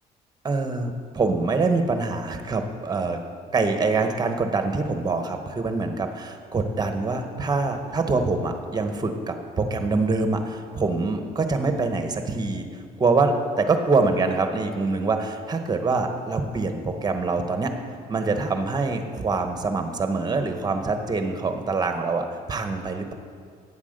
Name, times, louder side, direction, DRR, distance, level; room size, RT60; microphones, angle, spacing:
voice 1, 0.4-3.2 3.5-17.7 18.1-23.1, right 3 dB, 25° right, 6 dB, 1.1 m, -25 dB
8.8 x 8.3 x 6.6 m, 2.1 s
cardioid pair, 110°, 17 cm